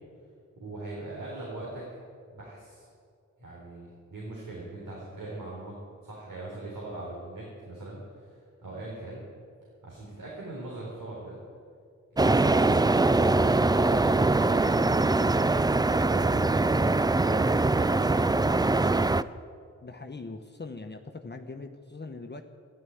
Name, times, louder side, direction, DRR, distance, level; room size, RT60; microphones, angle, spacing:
voice 1, 0.6-1.8 2.3-2.9 3.4-5.7 6.0-9.2 9.8-11.4 12.1-13.2 13.6-16.5 17.2-18.5, right 2 dB, 80° right, -5 dB, 3.9 m, -40 dB
sound 1, 12.2-19.2, right 2 dB, 15° right, 0.4 m, -23 dB
voice 2, 19.8-22.4, left 3 dB, 35° left, 5 dB, 1.0 m, -41 dB
12.5 x 11.0 x 9.3 m, 2.2 s
cardioid pair, 50°, 31 cm